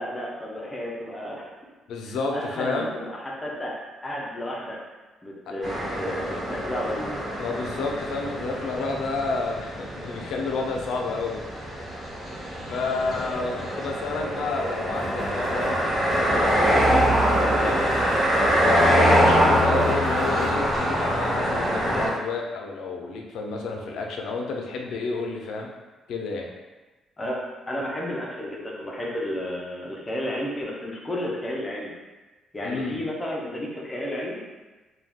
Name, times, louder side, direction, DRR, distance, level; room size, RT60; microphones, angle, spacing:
voice 1, 0.0-1.5 2.0-4.8 5.2-7.1 19.4-19.9 27.2-27.4 27.7-31.9 32.5-34.4, left 1 dB, 20° left, -3 dB, 0.5 m, -32 dB
voice 2, 1.9-2.9 7.4-11.4 12.7-15.8 16.1-17.8 18.6-25.7 26.1-26.5 32.6-33.0, left 3 dB, 75° left, 1 dB, 0.4 m, -30 dB
sound 1, 5.6-22.1, equal, 20° right, 1.3 m, -24 dB
sound 2, 14.9-20.8, right 1 dB, 70° right, 0.7 m, -37 dB
2.3 x 2.2 x 3.4 m, 1.2 s
cardioid pair, 120°, 0 cm